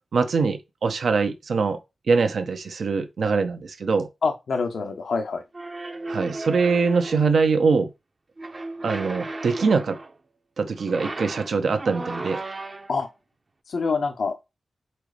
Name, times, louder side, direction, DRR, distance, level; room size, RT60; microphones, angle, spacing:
voice 1, 0.1-1.8 2.1-4.1 6.1-7.9 8.8-10.0 10.6-12.4, right 4 dB, 75° right, 0.9 m, -23 dB
voice 2, 4.2-5.4 12.9-13.1 13.7-14.6, left 4 dB, 80° left, 0.9 m, -26 dB
sound 1, 5.5-7.4 8.4-10.2 10.8-13.1, right 2 dB, 40° right, 0.8 m, -35 dB
4.5 x 4.1 x 5.1 m
cardioid pair, 70°, 0 cm